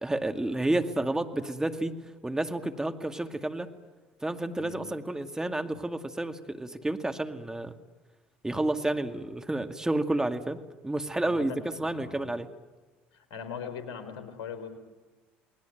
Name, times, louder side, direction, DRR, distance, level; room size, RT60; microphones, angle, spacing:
voice 1, 0.0-2.0 2.2-3.7 4.2-7.7 8.4-12.5, right 2 dB, 10° right, 7 dB, 2.3 m, -30 dB
voice 2, 11.2-12.3 13.1-14.8, left 6 dB, 70° left, 8 dB, 4.4 m, -41 dB
30.0 x 20.0 x 9.3 m, 1.3 s
hypercardioid pair, 65°, 5 cm